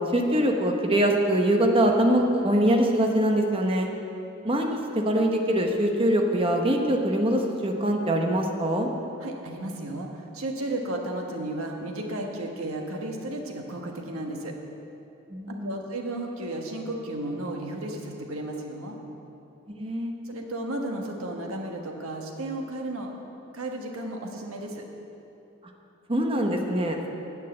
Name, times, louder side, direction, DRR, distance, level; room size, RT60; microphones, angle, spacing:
voice 1, 0.1-3.9 4.4-8.9 15.3-15.8 19.8-20.1 26.1-27.1, right 1 dB, 25° right, 2 dB, 0.9 m, -23 dB
voice 2, 9.2-14.5 15.5-19.0 20.2-23.1 23.5-24.8, right 1 dB, 75° right, 1 dB, 1.4 m, -33 dB
10.0 x 6.6 x 8.7 m, 2.9 s
head